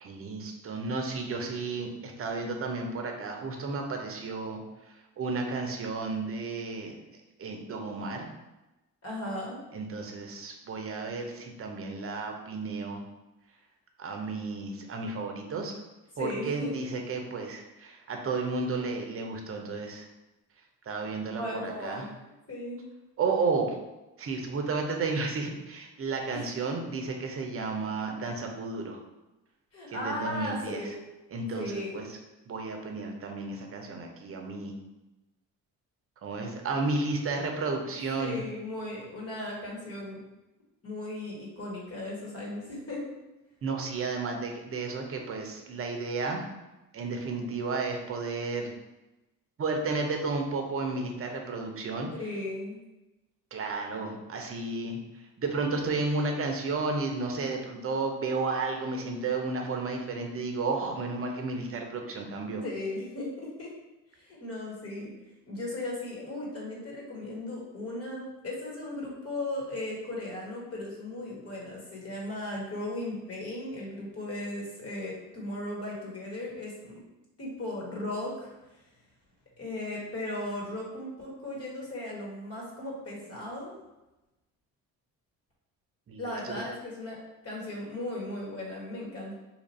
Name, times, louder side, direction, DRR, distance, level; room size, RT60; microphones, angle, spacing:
voice 1, 0.0-4.6 5.2-7.0 7.4-8.3 9.7-13.0 14.0-15.7 16.2-20.1 20.9-22.1 23.2-23.8 24.2-29.0 29.9-30.9 31.3-32.0 32.5-34.7 36.2-38.4 43.6-46.4 46.9-48.7 49.6-52.1 53.5-55.0 55.4-62.6 86.1-86.6, right 3 dB, 40° right, 3 dB, 0.7 m, -32 dB
voice 2, 9.0-9.6 16.1-16.7 21.4-22.1 22.5-22.8 26.3-26.5 29.7-31.0 31.6-32.1 38.2-40.2 40.8-43.0 52.2-52.8 62.6-63.7 64.1-65.1 65.5-77.0 77.4-78.5 79.6-83.7 86.2-87.2 87.4-89.3, left 1 dB, 45° left, -3 dB, 1.4 m, -36 dB
2.9 x 2.5 x 4.1 m, 1.0 s
cardioid pair, 80°, 34 cm